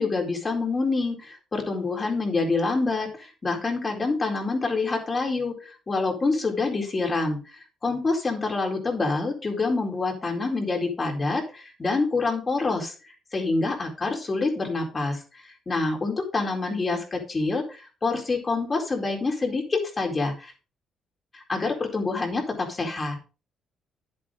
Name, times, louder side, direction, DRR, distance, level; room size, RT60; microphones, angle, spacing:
voice 1, 0.0-20.5 21.3-23.2, left 3 dB, 30° left, 1 dB, 4.2 m, -27 dB
10.5 x 8.9 x 3.9 m, 0.33 s
cardioid pair, 90°, 0 cm